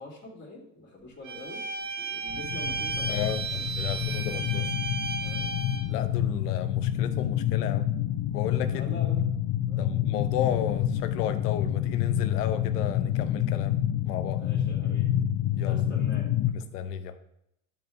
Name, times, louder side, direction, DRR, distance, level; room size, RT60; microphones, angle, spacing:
voice 1, 0.0-1.6 1.9-4.0 4.3-4.4 5.2-5.5 8.6-9.8 14.4-15.1 15.6-16.3, left 2 dB, 25° left, -2 dB, 2.9 m, -45 dB
Bowed string instrument, 1.2-5.9, right 4 dB, 40° right, 1.8 m, -34 dB
sound 1, 2.3-16.5, left 11 dB, 45° left, 0.8 m, -28 dB
voice 2, 3.1-3.4 3.8-4.7 5.9-7.9 8.3-8.8 9.8-13.7 14.0-14.4 15.5-16.0 16.5-17.2, left 10 dB, 80° left, 10 dB, 0.9 m, -33 dB
11.0 x 5.3 x 3.5 m, 0.79 s
hypercardioid pair, 85°, 46 cm